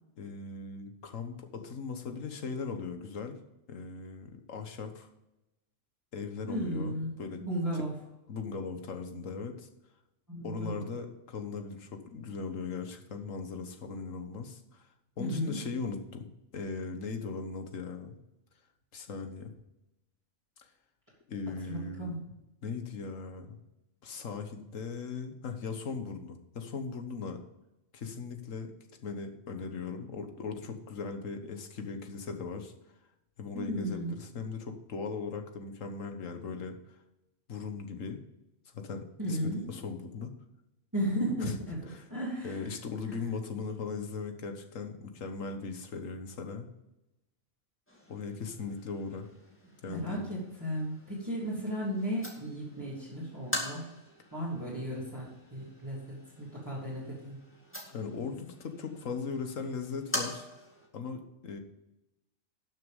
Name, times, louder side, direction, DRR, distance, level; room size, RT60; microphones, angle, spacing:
voice 1, 0.2-3.4 3.7-5.1 6.1-7.4 8.3-9.7 10.4-14.9 15.2-16.2 16.5-18.2 18.9-19.5 20.6-20.7 21.3-22.1 22.6-23.6 24.0-27.4 27.9-28.7 29.0-32.7 33.4-36.8 37.5-38.2 38.7-40.3 41.4-41.5 41.9-42.1 42.4-46.7 48.1-49.3 49.8-50.3 57.9-60.5 60.9-61.6, left 5 dB, 75° left, 6 dB, 1.6 m, -38 dB
voice 2, 6.5-7.1 7.4-7.9 10.3-10.8 15.2-15.6 21.7-22.2 33.5-34.1 39.2-39.7 40.9-41.8 42.1-42.8 43.0-43.2 49.9-53.9 54.3-57.4, equal, 15° right, -9 dB, 3.2 m, -35 dB
sound 1, 47.9-60.9, left 1 dB, 10° left, 1.9 m, -44 dB
12.0 x 6.6 x 5.4 m, 0.94 s
omnidirectional pair, 1.4 m